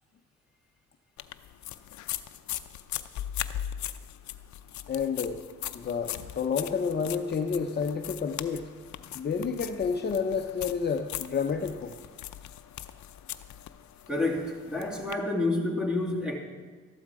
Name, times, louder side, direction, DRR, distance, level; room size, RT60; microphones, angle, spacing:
sound 1, 1.2-15.1, left 12 dB, 70° left, 0.6 m, -40 dB
voice 1, 4.9-5.4 5.7-8.7 9.1-11.9, left 6 dB, 35° left, 5 dB, 0.8 m, -30 dB
voice 2, 14.1-16.4, left 2 dB, 5° right, 0 dB, 2.5 m, -29 dB
13.5 x 11.5 x 4.8 m, 1.5 s
cardioid pair, 90°, 30 cm